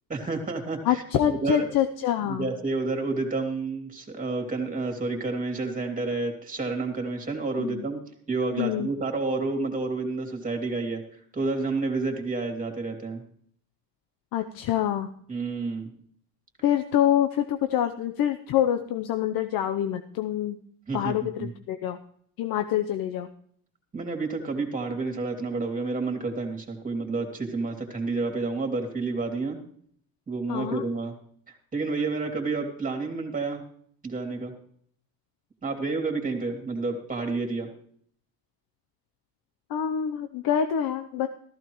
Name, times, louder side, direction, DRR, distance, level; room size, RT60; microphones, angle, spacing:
voice 1, 0.1-1.7 2.3-8.0 8.3-11.0 11.3-13.2 15.3-15.9 20.9-21.5 23.9-29.6 30.3-31.1 31.5-33.6 34.0-34.5 35.6-37.7, right 3 dB, 20° right, 3 dB, 2.8 m, -30 dB
voice 2, 0.8-2.5 7.6-7.8 8.6-8.9 14.3-15.1 16.6-20.6 20.9-22.0 22.4-23.3 30.5-30.8 39.7-41.3, left 10 dB, 75° left, 8 dB, 0.9 m, -26 dB
15.0 x 14.5 x 3.1 m, 0.63 s
cardioid pair, 140°, 36 cm